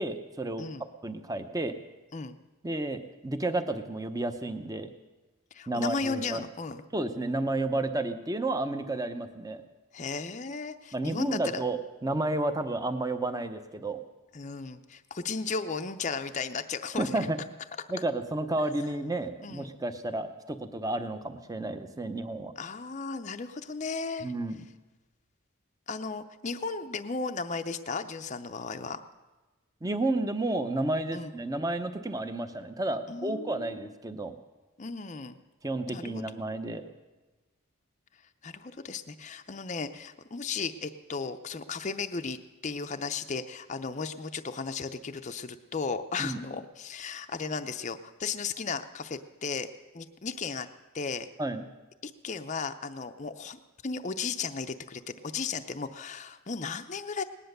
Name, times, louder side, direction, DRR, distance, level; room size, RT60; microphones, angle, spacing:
voice 1, 0.0-0.7 1.0-1.7 2.6-4.9 5.7-6.4 6.9-9.6 10.9-14.0 16.9-17.4 17.9-22.5 24.2-24.6 29.8-34.3 35.6-36.9 46.2-46.4 51.4-51.7, right 2 dB, 15° right, 9 dB, 0.8 m, -31 dB
voice 2, 5.5-6.8 9.9-11.7 14.3-17.3 19.4-19.7 22.6-24.3 25.9-29.0 31.1-31.3 33.1-33.9 34.8-35.4 35.9-36.4 38.4-42.4 42.6-49.7 49.9-50.7 50.9-51.3 52.0-57.2, left 4 dB, 35° left, 8 dB, 0.5 m, -35 dB
18.5 x 10.5 x 6.6 m, 1.2 s
head